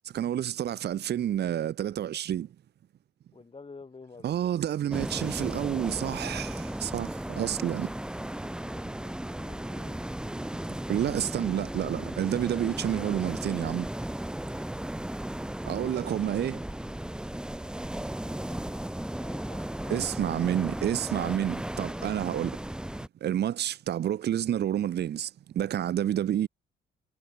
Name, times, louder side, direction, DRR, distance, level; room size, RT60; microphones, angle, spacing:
voice 1, 0.0-2.5 4.2-7.9 10.9-13.9 15.7-16.6 19.9-22.6 23.2-26.5, right 11 dB, 55° right, 0.8 m, -29 dB
voice 2, 3.3-4.5 8.8-10.0 18.1-20.0 20.6-21.6 22.0-22.1, left 4 dB, 25° left, 4.1 m, -50 dB
sound 1, 4.9-23.1, right 1 dB, 5° right, 0.6 m, -35 dB
cardioid pair, 90°, 20 cm